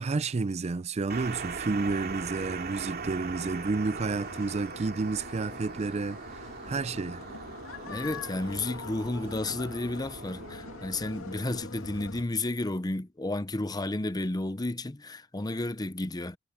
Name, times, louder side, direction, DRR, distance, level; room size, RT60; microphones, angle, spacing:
voice 1, 0.0-7.2, right 3 dB, 30° right, 0.4 m, -31 dB
sound 1, 1.1-11.6, right 4 dB, 50° right, 2.5 m, -40 dB
sound 2, 3.9-12.2, left 4 dB, 80° left, 2.4 m, -44 dB
voice 2, 7.9-16.4, left 2 dB, 20° left, 0.7 m, -32 dB
head